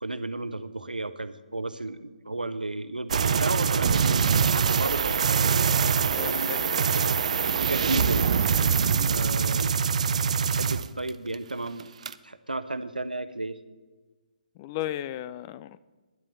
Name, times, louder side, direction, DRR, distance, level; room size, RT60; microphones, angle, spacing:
voice 1, 0.0-4.2 4.4-5.3 6.2-6.5 6.8-7.0 7.6-8.3 9.1-9.7 10.5-11.9 12.2-13.6, right 2 dB, 85° right, 0.8 m, -33 dB
sound 1, 3.1-11.3 11.7-12.1, right 6 dB, 50° right, 0.5 m, -24 dB
voice 2, 5.8-6.9 14.6-15.8, left 13 dB, 25° left, 0.3 m, -36 dB
10.5 x 7.5 x 7.0 m
figure-of-eight pair, 140°, 5 cm